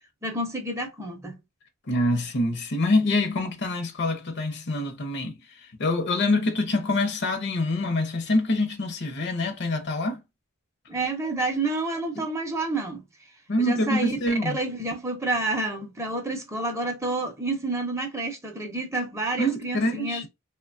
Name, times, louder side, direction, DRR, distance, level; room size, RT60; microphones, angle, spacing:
voice 1, 0.2-1.4 10.9-13.0 13.6-20.3, right 2 dB, 15° right, 0.5 m, -29 dB
voice 2, 1.9-10.2 12.1-12.2 13.5-14.6 19.4-20.3, left 2 dB, 55° left, 0.6 m, -25 dB
2.9 x 2.2 x 2.4 m
head